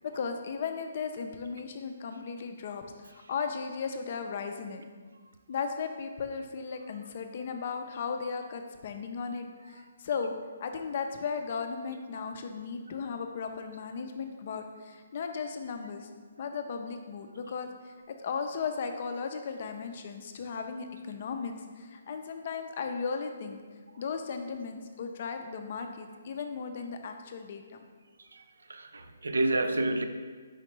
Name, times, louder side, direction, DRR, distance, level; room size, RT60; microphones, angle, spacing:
voice 1, 0.0-4.8 5.5-10.3 10.6-16.1 16.4-23.6 24.0-27.9, left 5 dB, 50° left, 6 dB, 0.4 m, -36 dB
voice 2, 28.7-30.1, right 2 dB, 85° right, 8 dB, 0.4 m, -29 dB
4.8 x 3.3 x 3.1 m, 1.5 s
hypercardioid pair, 150°, 0 cm